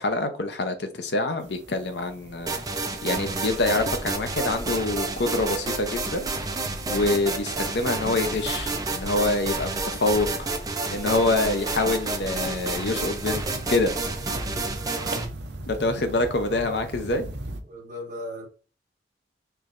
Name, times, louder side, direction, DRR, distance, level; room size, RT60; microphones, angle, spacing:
voice 1, 0.0-2.5 3.0-6.3 6.9-10.3 10.9-13.4 13.7-13.9 15.6-17.2, left 2 dB, 65° left, 0.6 m, -25 dB
sound 1, 1.4-17.6, right 2 dB, 65° right, 0.6 m, -42 dB
sound 2, 2.2-14.8, equal, 30° left, 1.0 m, -42 dB
sound 3, 2.5-15.3, right 3 dB, 20° right, 0.5 m, -30 dB
voice 2, 15.0-15.3 16.5-17.1 17.6-18.5, left 1 dB, 45° right, 1.3 m, -38 dB
4.5 x 3.1 x 2.5 m
head